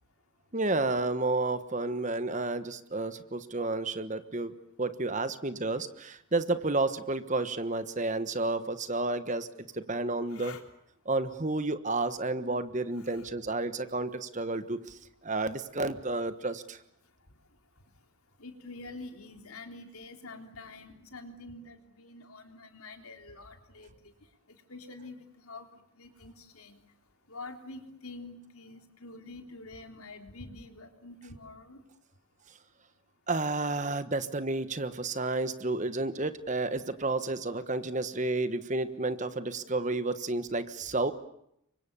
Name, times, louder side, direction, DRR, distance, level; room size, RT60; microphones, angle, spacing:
voice 1, 0.5-9.5 9.7-10.6 11.0-16.8 33.3-41.1, right 2 dB, 35° right, 11 dB, 1.3 m, -31 dB
voice 2, 10.3-10.6 13.0-13.3 18.4-23.9 24.7-25.7 26.0-26.8 27.3-31.8, left 2 dB, 85° left, 5 dB, 3.8 m, -46 dB
29.5 x 24.5 x 7.0 m, 0.76 s
head